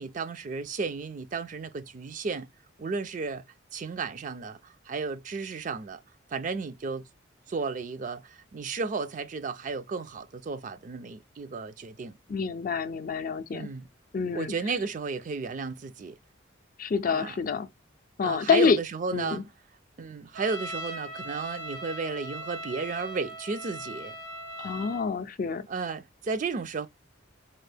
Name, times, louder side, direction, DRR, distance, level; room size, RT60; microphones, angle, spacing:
voice 1, 0.0-2.5 2.8-3.4 3.7-6.0 6.3-7.1 7.5-12.2 13.5-13.9 14.3-16.2 17.1-17.4 18.2-19.4 20.0-24.1 25.7-26.9, right 4 dB, 40° right, 0.3 m, -33 dB
voice 2, 12.3-13.7 14.1-14.5 16.8-17.7 18.2-18.8 19.1-19.4 24.6-25.7, left 5 dB, 45° left, 0.4 m, -27 dB
Trumpet, 20.4-25.1, right 1 dB, 85° right, 1.3 m, -39 dB
4.3 x 2.1 x 3.3 m
head